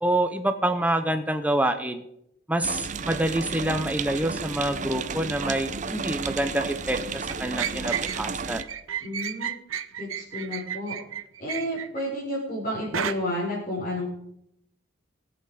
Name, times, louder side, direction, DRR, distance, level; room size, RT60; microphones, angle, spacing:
voice 1, 0.0-2.0 2.5-8.6, right 1 dB, 5° right, 8 dB, 0.8 m, -27 dB
sound 1, 2.6-8.6, right 5 dB, 35° right, 0.6 m, -32 dB
sound 2, 7.3-8.2 8.6-12.0 12.9-13.1, right 8 dB, 85° right, 0.9 m, -32 dB
voice 2, 9.0-9.5 10.0-11.0 11.4-14.1, left 1 dB, 40° left, -8 dB, 4.7 m, -31 dB
20.0 x 8.3 x 4.9 m, 0.78 s
head